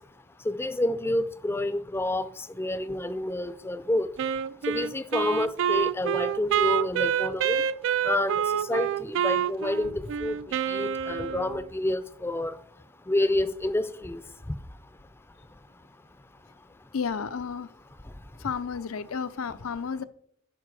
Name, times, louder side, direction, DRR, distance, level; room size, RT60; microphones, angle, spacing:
voice 1, 0.5-2.3 2.6-4.1 4.7-7.6 8.0-9.9 10.2-10.3 10.7-12.5 13.1-14.2, left 1 dB, 10° left, 0.5 m, -28 dB
Wind instrument woodwind instrument, 4.2-11.7, right 9 dB, 60° right, 0.3 m, -27 dB
voice 2, 16.9-17.7 18.4-20.0, left 6 dB, 70° left, 0.6 m, -32 dB
9.7 x 5.9 x 4.8 m
head